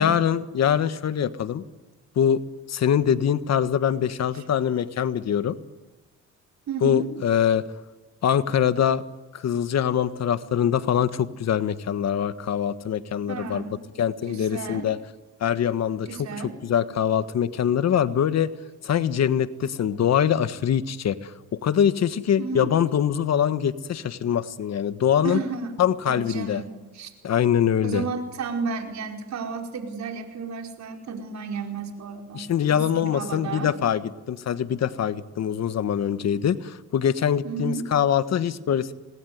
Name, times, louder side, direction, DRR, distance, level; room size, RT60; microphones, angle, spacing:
voice 1, 0.0-1.6 2.1-2.4 2.7-5.6 6.8-7.6 8.2-9.0 9.3-13.6 14.0-15.0 15.4-18.5 18.8-25.4 25.8-26.6 27.2-28.0 32.3-38.9, left 9 dB, 60° left, 12 dB, 1.5 m, -23 dB
voice 2, 6.7-7.1 13.3-13.7 14.3-14.9 16.1-16.5 22.4-22.7 25.2-25.7 26.1-27.1 27.8-33.7 37.4-37.9, right 4 dB, 65° right, 3 dB, 4.9 m, -32 dB
26.0 x 20.0 x 9.6 m, 1.2 s
cardioid pair, 90°, 30 cm